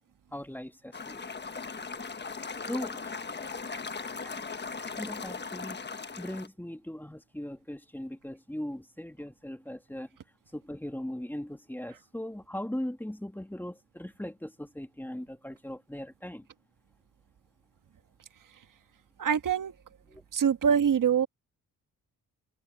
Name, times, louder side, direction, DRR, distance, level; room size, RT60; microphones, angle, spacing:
voice 1, 0.3-1.2 2.6-3.1 4.2-4.4 4.8-5.8 6.2-10.1 10.5-16.4 20.1-20.2, left 1 dB, 5° left, 2.5 m, -39 dB
sound 1, 0.9-6.5, left 4 dB, 30° left, 1.3 m, -38 dB
voice 2, 19.2-19.7 20.3-21.3, right 7 dB, 60° right, 1.5 m, -24 dB
cardioid pair, 75°, 36 cm